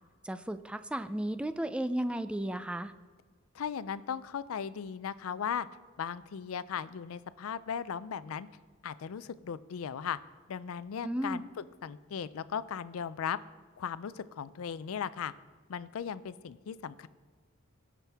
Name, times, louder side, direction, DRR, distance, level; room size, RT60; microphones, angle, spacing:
voice 1, 0.2-2.9 11.0-11.4, right 1 dB, 5° right, 11 dB, 0.3 m, -34 dB
voice 2, 3.5-5.7 6.0-8.5 8.8-10.2 10.5-13.4 13.8-15.3 15.7-17.1, left 7 dB, 80° left, 16 dB, 0.4 m, -37 dB
18.0 x 6.0 x 3.5 m, 1.5 s
head